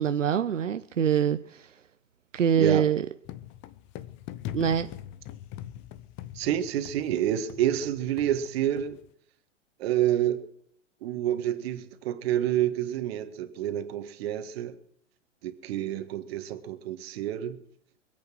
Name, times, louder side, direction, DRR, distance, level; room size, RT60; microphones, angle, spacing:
voice 1, 0.0-1.7 2.3-3.1 4.5-4.9, right 8 dB, 90° right, 0.7 m, -24 dB
sound 1, 3.2-9.1, left 12 dB, 30° left, 0.8 m, -42 dB
voice 2, 6.3-9.0 9.8-10.5 11.0-14.8 15.4-17.6, right 11 dB, 55° right, 1.8 m, -28 dB
22.5 x 8.7 x 6.2 m
hypercardioid pair, 105°, 37 cm